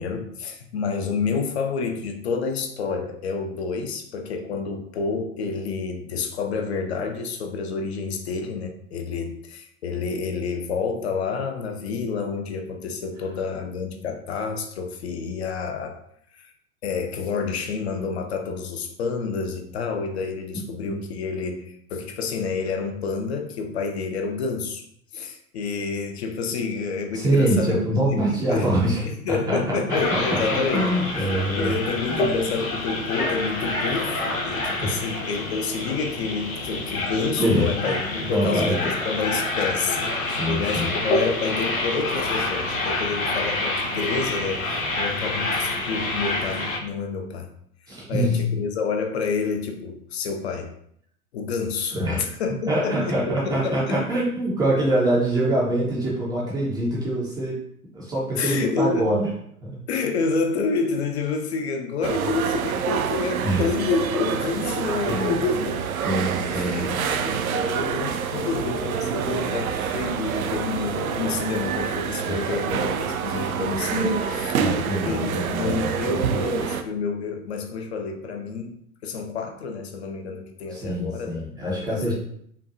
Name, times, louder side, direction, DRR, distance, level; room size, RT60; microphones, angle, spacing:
voice 1, 0.0-16.0 16.3-16.5 16.8-24.9 25.1-27.8 28.1-28.7 29.1-30.9 31.2-31.3 31.6-44.6 45.0-47.5 48.1-50.7 51.3-54.0 58.4-59.1 59.9-65.8 66.3-74.5 75.0-82.1, left 4 dB, 45° left, 4 dB, 0.6 m, -29 dB
voice 2, 27.1-31.7 32.1-32.2 34.8-35.0 37.4-37.9 38.2-38.9 40.3-40.9 47.9-48.4 51.9-52.2 52.7-57.6 57.9-59.3 59.6-59.8 63.4-63.7 65.1-65.4 66.0-66.9 72.2-72.4 73.9-74.2 74.5-76.4 80.7-82.1, right 1 dB, 10° right, -6 dB, 0.5 m, -25 dB
sound 1, 29.9-46.8, left 2 dB, 60° left, 1.0 m, -27 dB
sound 2, 62.0-76.8, right 7 dB, 65° right, 0.5 m, -27 dB
5.3 x 2.3 x 2.5 m, 0.67 s
figure-of-eight pair, 100°, 46 cm